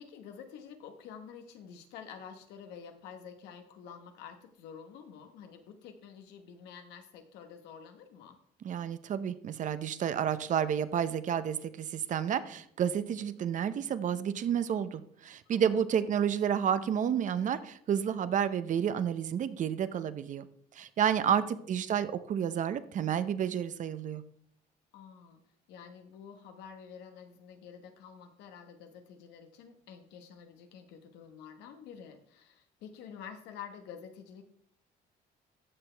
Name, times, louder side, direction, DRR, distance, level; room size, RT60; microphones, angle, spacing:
voice 1, 0.0-8.4 15.4-15.8 21.2-22.1 24.9-25.4 25.7-34.4, left 7 dB, 90° left, 6 dB, 1.2 m, -49 dB
voice 2, 8.6-20.5 20.7-24.2, right 8 dB, 50° right, 13 dB, 0.7 m, -30 dB
14.5 x 6.1 x 3.4 m, 0.67 s
cardioid pair, 110°, 17 cm